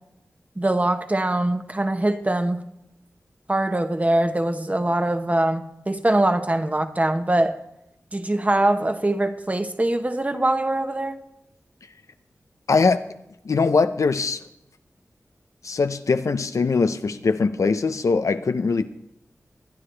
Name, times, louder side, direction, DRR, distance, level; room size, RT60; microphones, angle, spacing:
voice 1, 0.6-2.6 3.5-7.6 8.1-11.2, right 1 dB, 25° right, 1.1 m, -22 dB
voice 2, 12.7-13.1 13.4-14.4 15.6-18.8, left 4 dB, 75° left, 0.6 m, -21 dB
22.5 x 9.7 x 3.3 m
cardioid pair, 50°, 5 cm